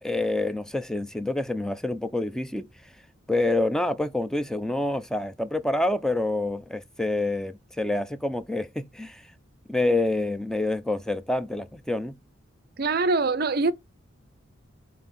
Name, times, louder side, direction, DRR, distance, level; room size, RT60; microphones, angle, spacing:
voice 1, 0.0-2.7 3.3-9.2 9.7-12.2, left 2 dB, 5° left, 0.5 m, -27 dB
voice 2, 12.8-13.7, right 3 dB, 50° right, 0.5 m, -23 dB
8.1 x 3.4 x 4.1 m
head